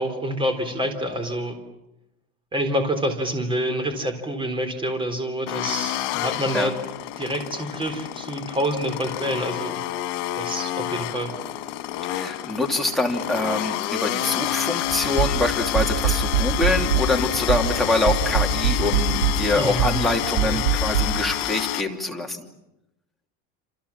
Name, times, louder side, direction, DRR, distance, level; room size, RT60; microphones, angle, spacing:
voice 1, 0.0-1.6 2.5-6.7 7.2-9.8 10.4-11.3 19.5-20.0 20.4-20.6, equal, 15° right, 7 dB, 4.0 m, -27 dB
sound 1, 5.5-21.8, left 14 dB, 80° left, 2.2 m, -29 dB
voice 2, 12.0-22.5, left 2 dB, ahead, 0 dB, 2.9 m, -25 dB
sound 2, 14.9-21.1, right 6 dB, 80° right, 6.5 m, -23 dB
28.0 x 28.0 x 7.3 m, 0.87 s
cardioid pair, 160°, 34 cm